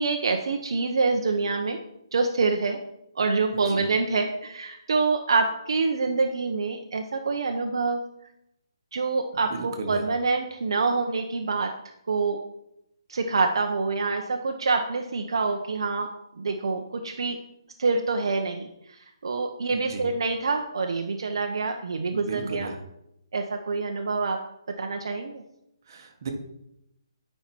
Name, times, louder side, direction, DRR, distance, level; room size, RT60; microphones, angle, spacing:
voice 1, 0.0-1.8 2.1-2.8 3.1-8.0 8.9-11.7 12.1-12.4 13.1-16.1 16.4-17.4 17.8-22.7 23.3-24.4 24.8-25.4, right 4 dB, 70° right, 4 dB, 0.9 m, -26 dB
voice 2, 3.5-3.9 9.5-10.0 19.7-20.1 22.1-22.8 25.9-26.3, right 4 dB, 45° right, 3 dB, 1.5 m, -35 dB
8.9 x 5.6 x 4.5 m, 0.81 s
hypercardioid pair, 165°, 3 cm